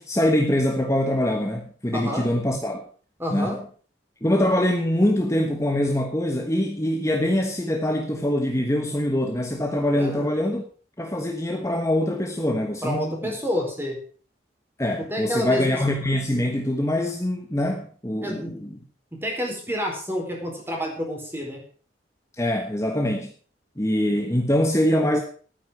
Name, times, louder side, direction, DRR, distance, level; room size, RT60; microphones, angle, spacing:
voice 1, 0.0-2.8 3.3-3.6 4.2-10.6 11.0-13.3 14.8-18.7 22.4-23.3 23.8-25.2, left 1 dB, 15° left, 3 dB, 1.3 m, -24 dB
voice 2, 1.9-2.3 3.2-3.6 10.0-10.3 12.8-14.0 15.0-15.8 18.2-18.5 19.1-21.6, equal, 15° right, 1 dB, 4.5 m, -29 dB
12.0 x 9.7 x 6.4 m, 0.42 s
head